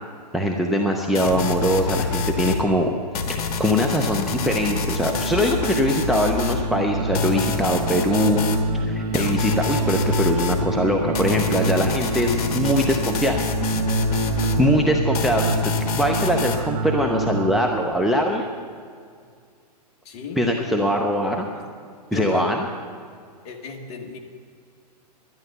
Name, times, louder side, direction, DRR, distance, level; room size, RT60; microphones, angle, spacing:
voice 1, 0.3-2.9 3.3-8.4 8.7-13.4 14.6-18.5 20.4-21.5 22.1-22.7, equal, ahead, 1 dB, 0.6 m, -22 dB
sound 1, 1.1-2.6 3.1-6.6 7.1-8.6 9.1-10.6 11.1-14.6 15.1-16.6, left 5 dB, 60° left, 1.4 m, -27 dB
sound 2, 3.5-17.6, right 2 dB, 70° right, 1.6 m, -27 dB
voice 2, 14.1-14.8 20.1-20.4 21.5-21.7 22.1-22.5 23.4-24.2, left 5 dB, 30° left, 2 dB, 1.7 m, -34 dB
11.5 x 10.5 x 6.8 m, 2.1 s
hypercardioid pair, 140°, 21 cm